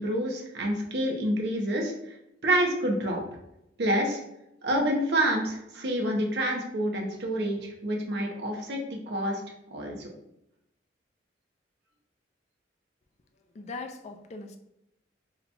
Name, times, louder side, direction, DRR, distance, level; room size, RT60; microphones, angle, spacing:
voice 1, 0.0-2.2 2.4-3.2 3.8-4.2 4.6-9.4 9.7-10.1, right 1 dB, 65° right, 1 dB, 0.7 m, -28 dB
voice 2, 13.5-14.6, left 3 dB, 35° left, 5 dB, 0.3 m, -40 dB
2.9 x 2.2 x 4.0 m, 0.83 s
head